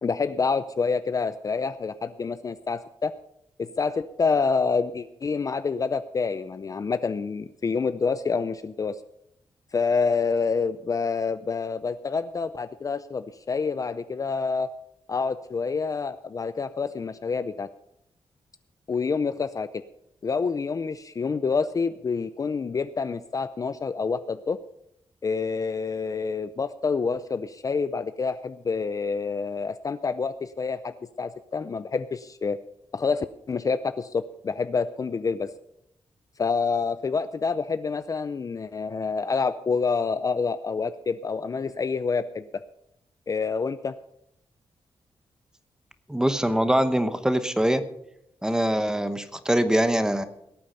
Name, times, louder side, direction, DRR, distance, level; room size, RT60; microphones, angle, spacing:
voice 1, 0.0-3.1 3.6-9.0 9.7-14.7 15.1-17.7 18.9-19.8 20.2-24.6 25.2-32.6 32.9-35.5 36.4-42.4 43.3-44.0, left 5 dB, 35° left, 12 dB, 0.5 m, -27 dB
voice 2, 46.1-47.8 48.4-50.2, equal, 5° right, 11 dB, 1.0 m, -23 dB
18.0 x 8.7 x 5.6 m, 0.77 s
wide cardioid pair, 130°, 10 cm